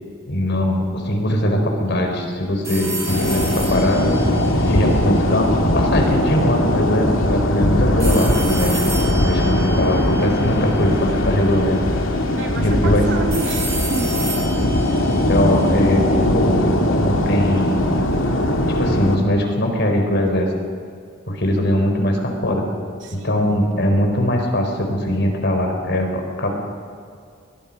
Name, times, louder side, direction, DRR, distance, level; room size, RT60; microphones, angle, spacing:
voice 1, 0.3-4.2 4.7-9.0 9.2-11.8 12.6-13.0 15.3-17.9 18.8-20.5 21.3-22.7 23.1-26.5, left 1 dB, 60° left, 3 dB, 4.2 m, -20 dB
sound 1, 2.6-5.7 8.0-11.1 13.3-15.9, right 2 dB, 15° right, 6.7 m, -31 dB
sound 2, 3.1-19.2, left 1 dB, 85° left, 2.3 m, -20 dB
voice 2, 12.3-14.3 23.0-23.7, right 1 dB, 65° right, 2 dB, 2.8 m, -29 dB
23.0 x 21.0 x 5.4 m, 2.2 s
head